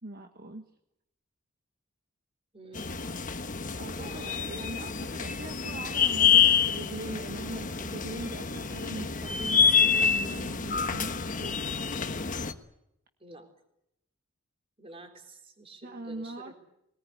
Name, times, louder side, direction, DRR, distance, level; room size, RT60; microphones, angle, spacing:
voice 1, 0.0-0.6 3.8-11.5 15.8-16.5, right 2 dB, 50° right, 5 dB, 1.5 m, -41 dB
voice 2, 2.5-3.0 3.7-4.6 13.2-13.5 14.8-16.5, right 2 dB, 30° right, 5 dB, 3.8 m, -49 dB
sound 1, 2.7-12.5, left 7 dB, 40° left, 1.3 m, -27 dB
21.5 x 19.0 x 9.9 m, 0.81 s
head